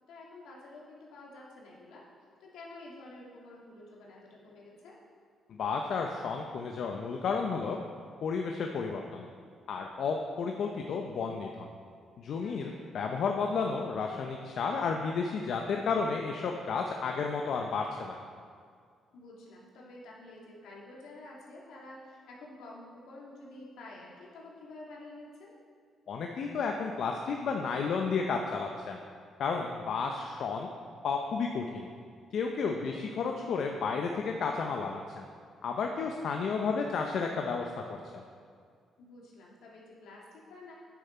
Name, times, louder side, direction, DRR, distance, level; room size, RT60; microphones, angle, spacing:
voice 1, 0.1-2.1 2.4-5.0 12.4-12.8 14.6-14.9 19.1-25.6 32.6-33.0 39.0-40.7, left 2 dB, 85° left, -4 dB, 2.0 m, -49 dB
voice 2, 5.5-7.8 8.2-9.3 9.7-11.7 12.2-18.2 26.1-29.0 29.4-30.7 31.0-31.9 32.3-35.3 35.6-38.2, left 5 dB, 65° left, 2 dB, 0.6 m, -32 dB
9.6 x 6.8 x 4.3 m, 2.2 s
cardioid pair, 90°, 0 cm